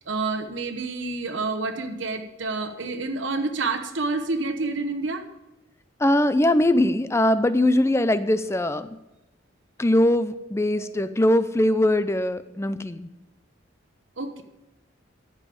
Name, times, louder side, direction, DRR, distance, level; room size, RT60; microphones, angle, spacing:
voice 1, 0.1-5.2 10.8-10.9 14.2-14.4, right 3 dB, 70° right, 5 dB, 1.1 m, -28 dB
voice 2, 6.0-9.0 9.8-13.1, left 1 dB, 15° left, 12 dB, 0.5 m, -21 dB
13.5 x 5.4 x 6.9 m, 0.98 s
head